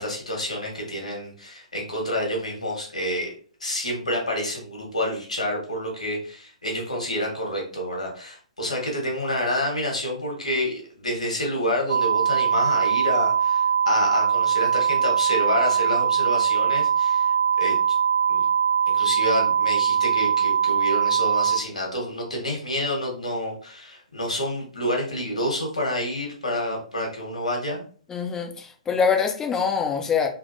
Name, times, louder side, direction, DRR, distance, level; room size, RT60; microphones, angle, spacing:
voice 1, 0.0-3.3 3.6-17.8 18.3-18.5 18.9-27.8, left 1 dB, 75° left, 1.4 m, -28 dB
sound 1, 11.9-21.6, right 7 dB, 65° right, 0.3 m, -21 dB
voice 2, 28.1-30.3, left 6 dB, 15° left, 0.5 m, -24 dB
3.3 x 2.8 x 2.5 m
figure-of-eight pair, 120°, 4 cm